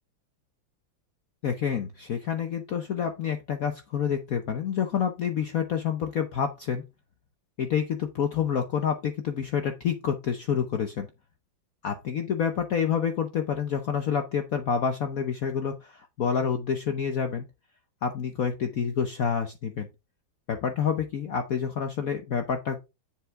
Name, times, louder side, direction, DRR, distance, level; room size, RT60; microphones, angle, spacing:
voice 1, 1.4-6.8 7.6-11.1 11.8-17.4 18.0-19.9 20.5-22.8, left 7 dB, 60° left, 7 dB, 1.0 m, -28 dB
7.4 x 7.0 x 3.5 m, 0.26 s
omnidirectional pair, 2.2 m